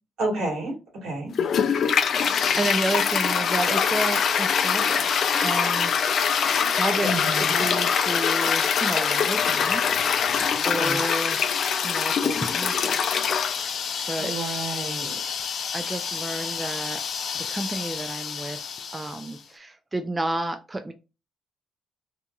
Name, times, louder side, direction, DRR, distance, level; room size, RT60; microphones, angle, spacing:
voice 1, 0.2-1.3 7.0-7.7 10.7-11.0 14.2-15.2, right 2 dB, 75° right, -2 dB, 1.5 m, -30 dB
Toilet flush, 1.3-19.3, left 7 dB, 60° left, 0.4 m, -24 dB
voice 2, 2.3-6.3 6.7-9.8 10.6-13.0 14.1-14.3 15.7-17.0 17.3-18.7 18.9-20.9, right 2 dB, 20° right, 6 dB, 0.3 m, -31 dB
2.8 x 2.4 x 2.2 m, 0.29 s
cardioid pair, 90°, 0 cm